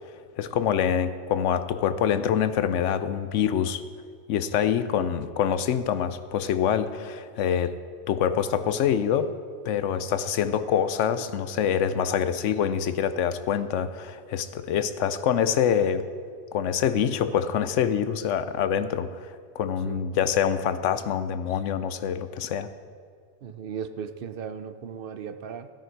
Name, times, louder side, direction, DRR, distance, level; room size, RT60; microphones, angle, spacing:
voice 1, 0.4-3.8 4.3-7.8 8.1-9.3 9.6-16.1 16.5-19.1 19.6-22.7, left 8 dB, 80° left, 12 dB, 0.9 m, -25 dB
voice 2, 23.4-25.7, right 7 dB, 55° right, 10 dB, 0.7 m, -36 dB
13.5 x 10.0 x 4.6 m, 2.1 s
omnidirectional pair, 1.3 m